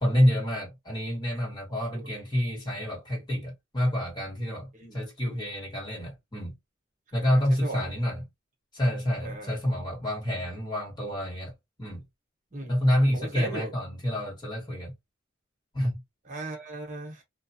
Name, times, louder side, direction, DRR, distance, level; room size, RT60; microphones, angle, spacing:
voice 1, 0.0-6.5 7.1-8.2 8.7-11.5 11.8-12.0 12.7-14.9 15.7-16.0, equal, 20° left, 1.4 m, -28 dB
voice 2, 7.2-7.9 9.2-9.6 12.5-12.8 13.1-13.7 16.2-17.2, right 2 dB, 40° right, 1.1 m, -37 dB
2.4 x 2.2 x 2.6 m
head